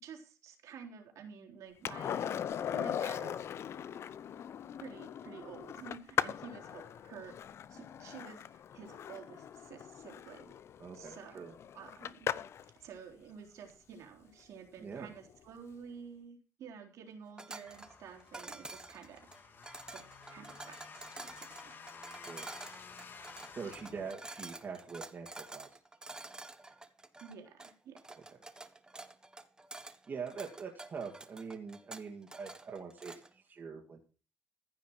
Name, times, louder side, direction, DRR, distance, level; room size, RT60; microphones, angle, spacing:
voice 1, 0.0-2.4 2.7-3.5 4.8-7.3 7.7-10.5 10.9-12.3 12.6-19.5 19.9-21.7 27.2-28.2, right 7 dB, 75° right, 1 dB, 3.7 m, -51 dB
Skateboard, 1.8-12.7 15.3-15.4, left 9 dB, 55° left, 0.7 m, -39 dB
voice 2, 10.8-11.5 14.8-15.1 22.2-22.5 23.5-25.8 30.1-34.0, right 5 dB, 40° right, -1 dB, 2.4 m, -44 dB
Metal pot rattle on stove top, 17.4-33.3, right 2 dB, 15° right, 1.3 m, -49 dB
sound 1, 17.7-24.1, left 5 dB, 40° left, 1.9 m, -52 dB
15.0 x 6.1 x 6.2 m, 0.36 s
cardioid pair, 110°, 5 cm